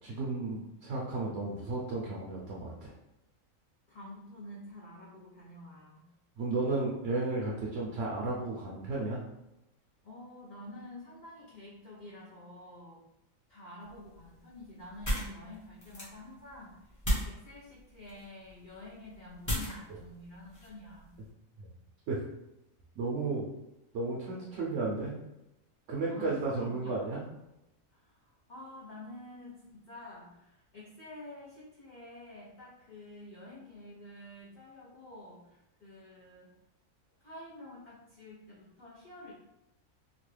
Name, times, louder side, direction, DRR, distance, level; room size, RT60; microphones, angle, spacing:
voice 1, 0.0-2.9 6.4-9.2 21.6-21.7 22.1-22.2 23.0-23.5 23.9-25.1 25.9-27.2, right 3 dB, 70° right, -4 dB, 0.9 m, -33 dB
voice 2, 3.9-6.1 10.0-13.0 13.5-17.0 17.2-21.1 26.1-27.0 27.9-36.5 37.2-39.3, left 1 dB, 45° left, -7 dB, 0.7 m, -49 dB
sound 1, 13.8-21.3, equal, 15° left, 0.9 m, -38 dB
3.0 x 2.3 x 3.1 m, 0.92 s
omnidirectional pair, 1.4 m